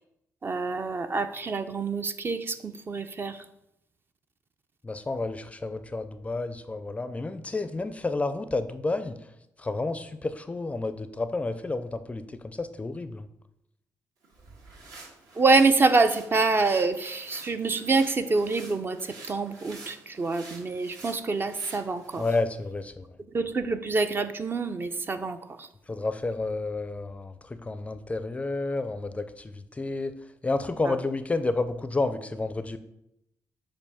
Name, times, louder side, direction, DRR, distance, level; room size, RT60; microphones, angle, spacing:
voice 1, 0.4-3.4 15.3-22.2 23.3-25.7 30.8-31.0, right 3 dB, 35° right, 9 dB, 0.5 m, -26 dB
voice 2, 4.8-9.2 9.6-13.3 22.2-23.2 25.9-30.2 30.4-32.8, left 3 dB, 20° left, 11 dB, 0.4 m, -30 dB
sound 1, 14.2-22.5, right 3 dB, 70° right, 1.4 m, -49 dB
6.8 x 2.6 x 5.7 m, 0.82 s
cardioid pair, 85°, 6 cm